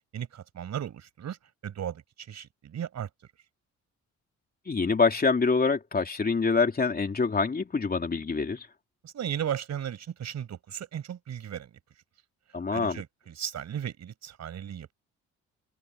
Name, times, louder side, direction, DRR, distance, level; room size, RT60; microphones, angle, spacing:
voice 1, 0.1-1.4 1.6-3.1 9.0-11.7 12.7-14.9, right 9 dB, 60° right, 5.9 m, -36 dB
voice 2, 4.7-8.7 12.5-13.0, left 4 dB, 30° left, 3.2 m, -25 dB
cardioid pair, 90°, 30 cm